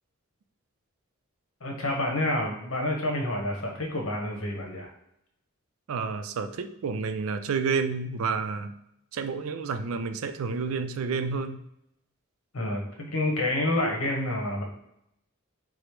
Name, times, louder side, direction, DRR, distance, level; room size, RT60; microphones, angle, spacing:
voice 1, 1.6-4.9 12.5-14.6, left 1 dB, 70° left, 1 dB, 0.9 m, -28 dB
voice 2, 5.9-8.8 9.1-11.6, right 5 dB, 75° right, 10 dB, 0.4 m, -30 dB
4.9 x 2.1 x 4.5 m, 0.79 s
head